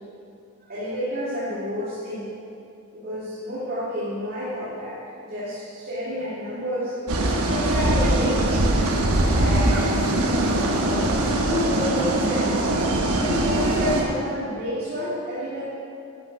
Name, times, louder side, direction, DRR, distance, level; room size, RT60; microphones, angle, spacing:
voice 1, 0.6-2.3 2.9-6.9 7.5-8.7 9.3-12.6 13.1-15.6, equal, 45° right, -11 dB, 2.5 m, -29 dB
sound 1, 7.1-14.0, right 1 dB, 90° right, 1.2 m, -22 dB
12.0 x 8.1 x 5.2 m, 2.7 s
head